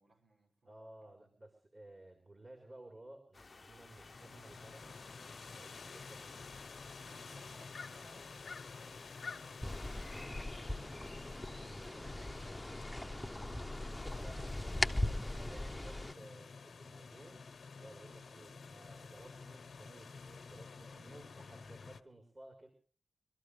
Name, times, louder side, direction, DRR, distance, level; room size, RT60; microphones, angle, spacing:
voice 1, 0.0-1.3 7.0-13.9 18.1-18.4, right 1 dB, 90° right, 0 dB, 5.2 m, -64 dB
voice 2, 0.6-5.0 5.5-6.5 13.9-17.5 17.7-22.7, right 1 dB, 40° right, 3 dB, 4.1 m, -56 dB
sound 1, 3.3-10.3, left 3 dB, 55° left, 0.8 m, -57 dB
sound 2, 3.9-22.0, left 4 dB, 80° left, 1.0 m, -51 dB
sound 3, 9.6-16.1, left 1 dB, 15° left, 0.9 m, -39 dB
25.0 x 13.0 x 3.3 m, 0.39 s
cardioid pair, 50°, 0 cm